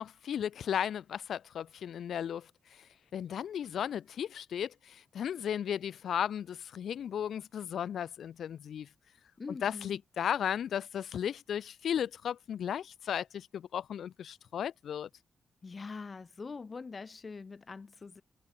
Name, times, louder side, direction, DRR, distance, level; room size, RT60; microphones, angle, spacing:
voice 1, 0.0-2.9 3.1-8.9 9.5-15.1, left 9 dB, 75° left, 2.8 m, -35 dB
voice 2, 9.4-10.0 15.6-18.2, left 4 dB, 45° left, 5.3 m, -43 dB
cardioid pair, 55°, 0 cm